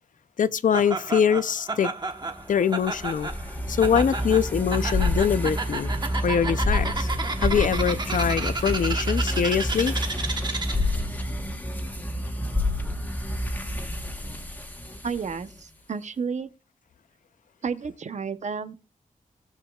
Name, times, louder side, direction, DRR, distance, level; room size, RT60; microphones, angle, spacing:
voice 1, 0.4-1.9 2.5-3.3 3.7-7.1 7.4-9.9, left 7 dB, 70° left, 0.5 m, -23 dB
Laughter, 0.7-11.0, right 3 dB, 30° right, 1.1 m, -32 dB
sound 1, 2.2-15.6, left 1 dB, 10° left, 1.2 m, -29 dB
voice 2, 15.0-16.5 17.6-18.7, right 5 dB, 55° right, 0.8 m, -31 dB
19.0 x 7.2 x 2.3 m
wide cardioid pair, 175°, 14 cm